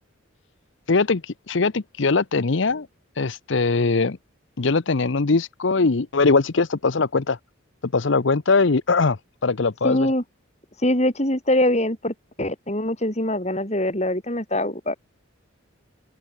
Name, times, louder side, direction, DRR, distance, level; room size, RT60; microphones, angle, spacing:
voice 1, 0.9-2.9 3.2-4.2 4.6-7.4 7.8-10.1, left 4 dB, 65° left, 0.8 m, -21 dB
voice 2, 9.8-10.2 10.8-14.9, left 1 dB, 35° left, 5.5 m, -23 dB
open air
head